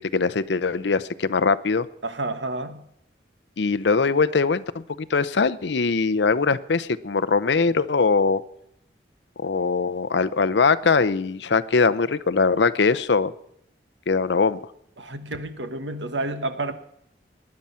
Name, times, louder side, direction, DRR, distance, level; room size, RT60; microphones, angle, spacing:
voice 1, 0.0-1.9 3.6-8.4 9.4-13.3 14.1-14.6, left 4 dB, 75° left, 14 dB, 0.7 m, -21 dB
voice 2, 2.0-2.9 15.0-16.7, right 2 dB, 90° right, 9 dB, 1.4 m, -30 dB
19.0 x 11.0 x 5.7 m, 0.74 s
head